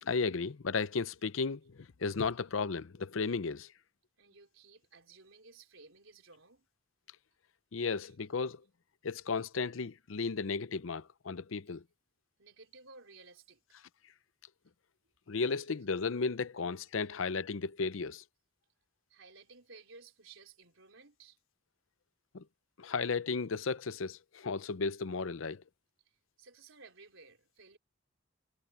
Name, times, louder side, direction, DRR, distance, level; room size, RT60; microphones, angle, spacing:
voice 1, 0.0-3.7 7.7-8.6 9.0-11.8 15.3-18.2 22.3-22.4 22.8-25.6, left 4 dB, 75° left, 0.6 m, -34 dB
voice 2, 4.2-6.7 8.0-8.2 9.2-9.5 12.4-13.8 15.8-15.9 19.1-21.4 26.0-27.8, right 4 dB, 75° right, 4.0 m, -57 dB
head